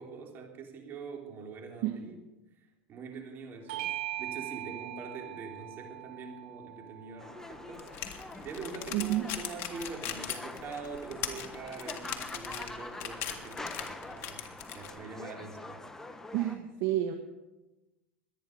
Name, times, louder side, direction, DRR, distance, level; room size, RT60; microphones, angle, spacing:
voice 1, 0.0-2.2 2.9-3.9 4.2-15.8, right 4 dB, 35° right, 2 dB, 3.4 m, -44 dB
Bell / Doorbell, 3.7-8.5, right 16 dB, 70° right, 0.4 m, -41 dB
sound 1, 7.2-16.6, left 2 dB, 10° left, 1.0 m, -45 dB
sound 2, 7.8-14.9, left 10 dB, 50° left, 1.8 m, -39 dB
voice 2, 8.9-9.3 16.3-17.1, right 13 dB, 55° right, 6 dB, 1.2 m, -30 dB
22.5 x 9.4 x 5.2 m, 1.1 s
hypercardioid pair, 110°, 6 cm